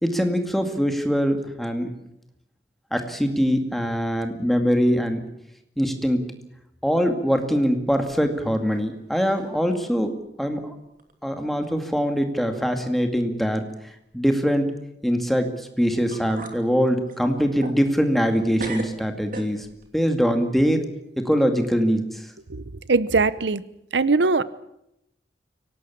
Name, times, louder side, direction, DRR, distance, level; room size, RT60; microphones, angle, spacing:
voice 1, 0.0-1.9 2.9-5.3 5.8-6.3 6.8-10.8 11.2-13.6 14.1-14.7 15.0-19.7 19.9-20.8 21.2-22.3, equal, ahead, 5 dB, 2.3 m, -23 dB
sound 1, 7.9-8.8 9.1-9.6 10.0-10.1 11.0-11.1 11.8-11.9 12.3-12.7 13.0-13.1 15.7-15.8 16.1-16.6 17.1-18.3 18.6-19.9, right 2 dB, 50° right, 3.0 m, -39 dB
voice 2, 22.5-23.6 23.9-24.4, right 3 dB, 90° right, 17 dB, 0.9 m, -21 dB
24.5 x 18.0 x 8.5 m, 0.83 s
head